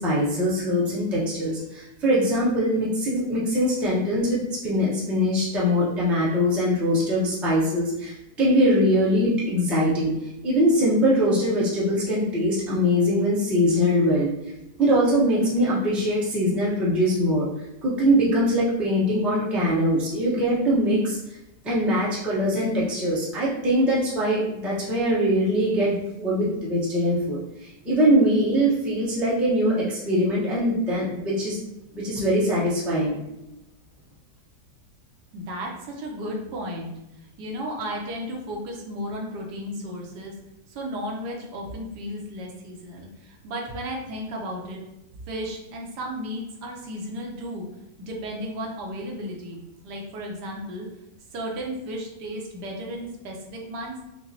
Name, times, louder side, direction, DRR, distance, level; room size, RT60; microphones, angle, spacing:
voice 1, 0.0-10.1 10.4-14.3 14.8-17.5 17.8-21.2 21.6-31.6 31.9-33.2, equal, ahead, -7 dB, 0.5 m, -22 dB
voice 2, 35.3-36.9 37.4-40.3 40.7-44.8 45.3-47.7 48.0-50.9 51.3-54.0, equal, 75° right, -1 dB, 1.3 m, -34 dB
5.5 x 2.0 x 2.7 m, 0.91 s
omnidirectional pair, 1.8 m